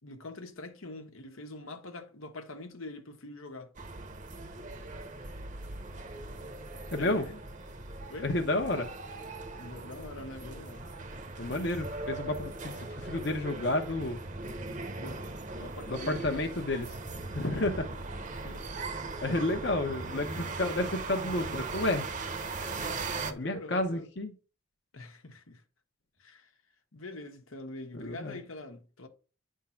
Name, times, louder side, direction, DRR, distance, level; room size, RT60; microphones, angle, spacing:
voice 1, 0.0-3.7 7.0-7.4 8.1-8.3 9.5-10.9 15.0-15.2 15.6-16.5 17.5-18.0 18.3-18.7 23.2-24.1 24.9-25.6 26.2-26.5 26.9-29.1, left 2 dB, 90° left, 1.2 m, -44 dB
sound 1, 3.8-23.3, right 3 dB, 35° right, 0.8 m, -39 dB
voice 2, 6.9-7.2 8.2-8.9 11.4-14.2 15.9-16.9 17.3-17.8 19.2-22.1 23.4-24.3 27.9-28.4, left 1 dB, 55° left, 0.9 m, -31 dB
9.5 x 3.7 x 5.8 m
head